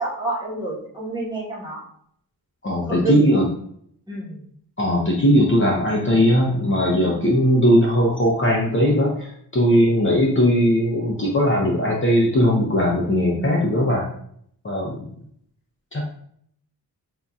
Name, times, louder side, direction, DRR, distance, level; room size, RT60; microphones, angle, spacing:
voice 1, 0.0-1.8 2.9-3.4 4.1-4.4, right 2 dB, 10° right, -5 dB, 1.2 m, -28 dB
voice 2, 2.6-3.4 4.8-14.0 14.6-15.0 15.9-16.0, equal, 30° left, -2 dB, 0.7 m, -19 dB
5.4 x 2.6 x 2.3 m, 0.66 s
wide cardioid pair, 90°, 39 cm